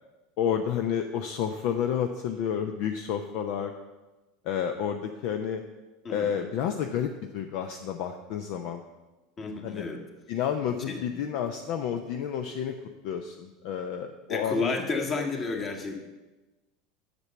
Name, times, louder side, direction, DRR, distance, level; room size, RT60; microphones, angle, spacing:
voice 1, 0.4-3.7 4.4-5.6 6.1-8.8 9.6-9.8 10.3-12.8 13.0-14.7, left 8 dB, 55° left, 6 dB, 0.6 m, -30 dB
voice 2, 9.4-10.0 10.9-11.1 14.3-16.0, left 3 dB, 30° left, 3 dB, 1.8 m, -31 dB
8.1 x 6.8 x 7.1 m, 1.1 s
figure-of-eight pair, 75°, 0 cm